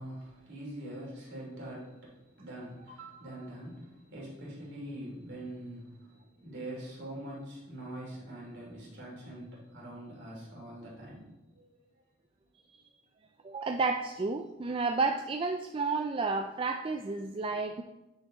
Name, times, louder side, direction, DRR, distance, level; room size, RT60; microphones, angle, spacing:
voice 1, 0.0-11.3 11.5-11.8, right 1 dB, 55° right, -4 dB, 3.0 m, -44 dB
voice 2, 13.4-17.8, right 4 dB, 25° right, 5 dB, 0.3 m, -31 dB
9.9 x 4.7 x 4.0 m, 1.0 s
head